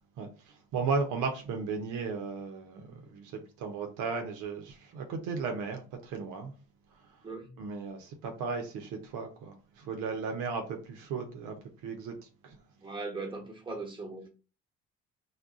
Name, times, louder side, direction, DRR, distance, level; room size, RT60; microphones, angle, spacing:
voice 1, 0.2-6.5 6.9-7.2 7.6-11.6 11.8-12.6, right 4 dB, 70° right, 0.7 m, -35 dB
voice 2, 7.2-7.6 12.8-14.3, right 3 dB, 15° right, 1.1 m, -39 dB
2.3 x 2.2 x 3.6 m
hypercardioid pair, 60°, 32 cm